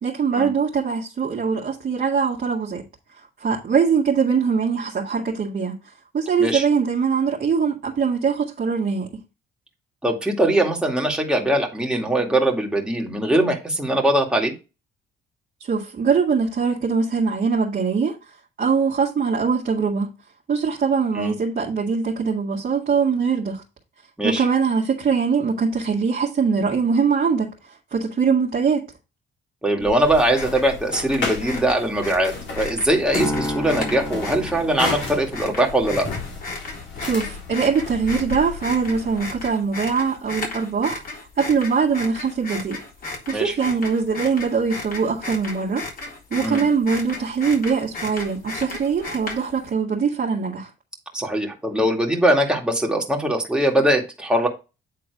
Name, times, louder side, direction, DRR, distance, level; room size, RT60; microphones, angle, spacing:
voice 1, 0.0-2.8 3.4-5.8 6.1-9.1 15.6-18.2 18.6-20.1 20.5-23.6 24.2-28.9 37.0-41.0 41.4-42.8 43.3-45.8 46.3-50.7, right 5 dB, 50° right, 1.8 m, -22 dB
voice 2, 10.0-14.5 21.1-21.4 24.2-24.4 29.6-36.1 43.3-43.5 46.4-46.6 51.1-54.5, right 1 dB, 5° right, 2.2 m, -21 dB
sound 1, 29.8-39.5, left 4 dB, 65° left, 2.8 m, -33 dB
sound 2, 30.2-49.7, left 3 dB, 50° left, 3.7 m, -35 dB
Piano, 33.2-35.6, left 1 dB, 20° left, 2.2 m, -30 dB
8.8 x 3.8 x 4.8 m
cardioid pair, 90°, 20 cm